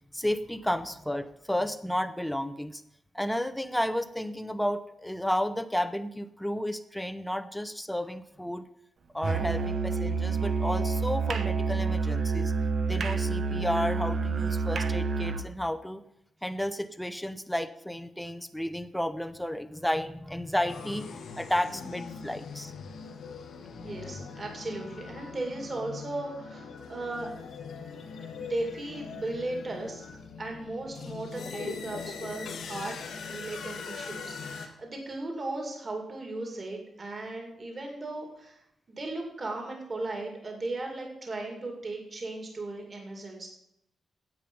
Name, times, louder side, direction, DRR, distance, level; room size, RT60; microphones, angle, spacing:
voice 1, 0.1-2.8 3.1-8.7 9.1-12.5 12.9-16.0 16.4-22.7, left 1 dB, 5° left, 10 dB, 0.7 m, -32 dB
Musical instrument, 9.2-15.5, right 4 dB, 60° right, 0.8 m, -28 dB
sound 1, 20.7-34.7, left 5 dB, 85° left, 1.6 m, -41 dB
voice 2, 23.8-27.3 28.2-30.1 30.4-32.9 33.3-38.6 38.9-43.5, right 2 dB, 35° right, 1 dB, 2.4 m, -36 dB
10.0 x 8.4 x 5.4 m, 0.78 s
wide cardioid pair, 135°, 0 cm